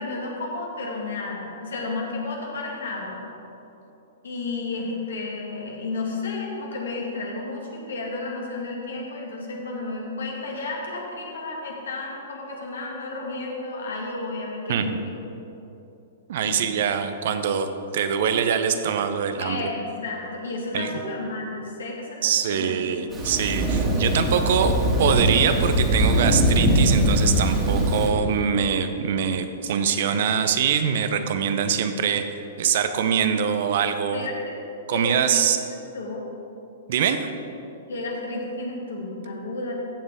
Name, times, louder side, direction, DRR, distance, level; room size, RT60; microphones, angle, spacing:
voice 1, 0.0-3.2 4.2-15.1 16.5-16.8 19.4-22.2 22.5-22.9 34.1-34.5 34.9-35.4 35.9-36.2 37.9-39.7, left 3 dB, 70° left, -1 dB, 2.1 m, -32 dB
voice 2, 16.3-17.7 17.9-19.6 20.7-20.9 22.2-32.3 32.6-34.3 34.9-35.6 36.9-37.3, right 7 dB, 55° right, 8 dB, 0.7 m, -23 dB
Thunder, 23.1-28.1, right 1 dB, 20° right, 2.0 m, -21 dB
14.5 x 7.3 x 3.6 m, 3.0 s
figure-of-eight pair, 110°, 0 cm